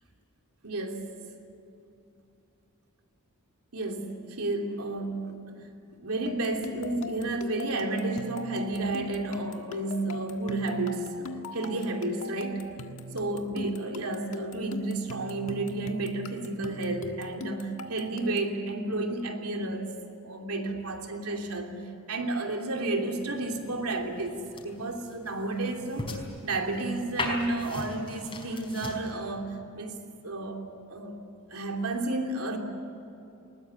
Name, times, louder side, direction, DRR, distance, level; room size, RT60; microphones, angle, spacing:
voice 1, 0.6-1.1 3.7-5.7 6.0-12.7 13.1-19.9 20.2-30.6 30.9-31.2 31.5-32.6, right 2 dB, 80° right, 2 dB, 3.1 m, -32 dB
sound 1, 6.3-18.6, left 2 dB, 65° left, 1.6 m, -41 dB
sound 2, 23.2-29.1, left 2 dB, 25° left, 4.7 m, -39 dB
21.0 x 20.0 x 9.8 m, 2.7 s
head